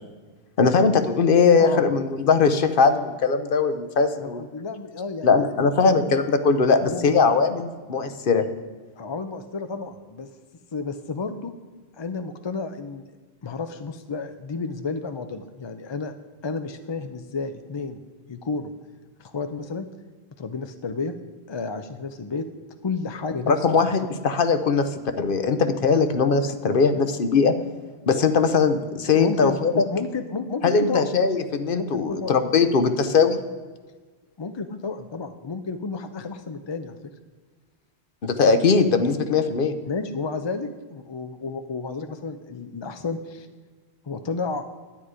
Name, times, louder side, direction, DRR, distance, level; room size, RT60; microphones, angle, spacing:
voice 1, 0.6-4.4 5.2-8.5 23.5-24.9 25.2-27.5 28.1-29.7 30.6-33.4 38.2-39.7, left 5 dB, 60° left, 9 dB, 0.9 m, -20 dB
voice 2, 4.2-6.1 6.8-7.1 9.0-10.3 10.7-11.5 12.0-13.0 13.4-16.1 16.4-18.0 18.3-18.7 19.2-19.9 20.4-21.1 21.5-22.5 22.8-23.5 23.9-24.2 29.1-31.1 31.8-32.3 34.4-37.0 39.9-43.5 44.0-44.7, left 4 dB, 40° left, 8 dB, 0.4 m, -31 dB
10.0 x 9.6 x 4.9 m, 1.4 s
omnidirectional pair, 1.1 m